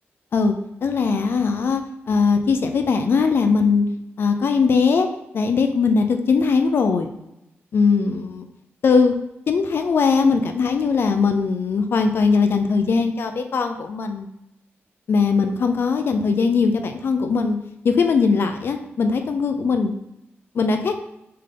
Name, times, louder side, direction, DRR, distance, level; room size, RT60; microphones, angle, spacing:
voice 1, 0.8-1.8 2.1-3.9 4.2-5.1 5.3-7.1 7.7-8.4 8.8-9.1 9.5-14.3 15.1-17.6 17.8-19.9 20.5-21.0, left 5 dB, 60° left, 7 dB, 0.5 m, -20 dB
6.5 x 3.9 x 3.8 m, 0.87 s
wide cardioid pair, 150°, 4 cm